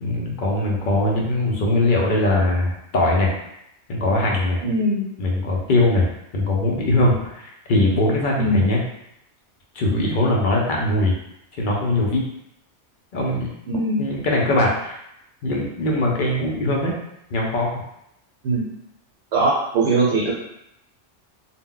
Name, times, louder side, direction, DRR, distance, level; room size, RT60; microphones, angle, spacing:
voice 1, 0.0-3.4 3.9-4.6 5.2-8.8 9.7-11.2 11.5-12.2 13.1-13.5 14.0-15.0 15.4-17.0 17.3-17.8, left 1 dB, 55° left, -2 dB, 0.6 m, -21 dB
voice 2, 4.6-5.1 8.4-8.7 13.7-14.1 18.4-18.6 19.3-20.3, right 2 dB, 75° right, -4 dB, 0.9 m, -21 dB
2.1 x 2.1 x 3.6 m, 0.81 s
omnidirectional pair, 1.2 m